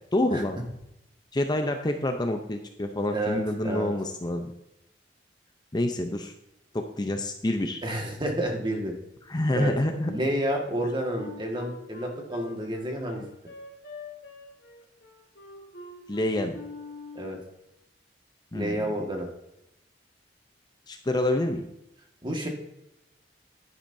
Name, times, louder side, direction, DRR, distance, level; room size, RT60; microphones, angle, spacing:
voice 1, 0.1-0.6 1.3-4.5 5.7-6.3 6.7-7.8 9.3-10.1 16.1-16.6 18.5-18.9 20.9-21.7, left 1 dB, 25° left, 5 dB, 0.6 m, -27 dB
voice 2, 3.1-3.9 7.8-8.9 9.5-9.7 10.1-13.2 17.1-17.4 18.5-19.3 22.2-22.5, right 1 dB, 25° right, 2 dB, 1.7 m, -30 dB
Wind instrument woodwind instrument, 11.1-17.4, left 3 dB, 65° left, 2.6 m, -45 dB
10.5 x 10.0 x 2.7 m, 0.85 s
head